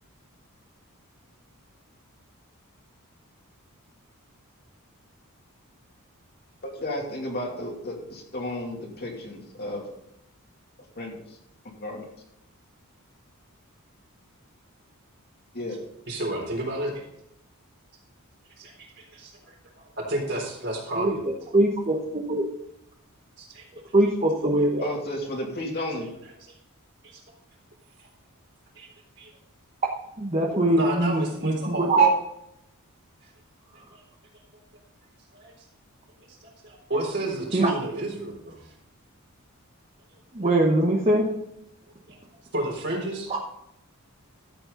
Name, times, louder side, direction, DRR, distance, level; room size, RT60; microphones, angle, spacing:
voice 1, 6.8-9.9 11.0-11.4 11.6-12.0 15.5-15.8 24.8-26.1, left 1 dB, 45° left, -1 dB, 2.6 m, -33 dB
voice 2, 16.1-17.0 18.6-21.3 23.4-23.6 26.4-26.5 27.0-27.2 28.0-28.1 28.8-28.9 29.2-29.3 30.7-31.9 33.2-33.3 33.9-34.0 35.3-35.5 36.4-38.7 42.1-42.2 42.5-43.3, right 1 dB, 50° right, -1 dB, 3.9 m, -31 dB
voice 3, 21.5-22.4 23.9-24.8 30.2-32.1 37.5-37.7 40.3-41.2, right 2 dB, 30° right, -1 dB, 1.1 m, -22 dB
13.0 x 7.9 x 3.9 m, 0.80 s
head